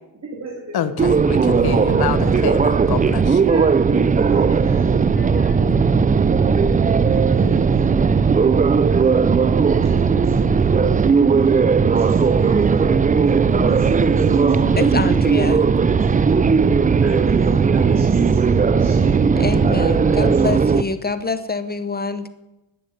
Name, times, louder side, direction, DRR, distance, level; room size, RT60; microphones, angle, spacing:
voice 1, 0.2-1.4 3.4-6.3 7.0-8.2 8.9-9.4 9.8-11.7 12.0-12.9 13.5-15.1 15.9-16.4 17.0-19.3 19.6-19.8 20.0-20.4, right 2 dB, 35° right, -2 dB, 3.4 m, -33 dB
voice 2, 0.7-3.5 5.2-5.5, left 9 dB, 50° left, 11 dB, 1.2 m, -27 dB
sound 1, 1.0-20.8, right 5 dB, 20° right, 0.4 m, -17 dB
sound 2, 11.9-17.7, right 3 dB, 50° right, 5.1 m, -45 dB
voice 3, 14.8-15.7 19.1-22.3, left 4 dB, 20° left, 12 dB, 0.8 m, -26 dB
12.5 x 7.9 x 9.4 m, 0.98 s
cardioid pair, 100°, 47 cm